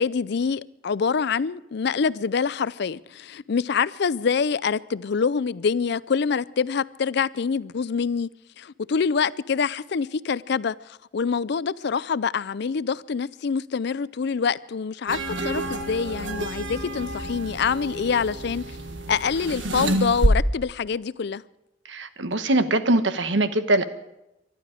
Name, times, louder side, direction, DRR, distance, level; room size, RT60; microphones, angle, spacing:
voice 1, 0.0-8.3 8.6-18.6 19.1-21.4, left 5 dB, 60° left, 0.5 m, -25 dB
sound 1, 15.1-20.3, right 1 dB, 90° right, 1.6 m, -28 dB
voice 2, 21.9-23.8, right 2 dB, 75° right, 1.2 m, -22 dB
24.0 x 12.0 x 5.1 m
head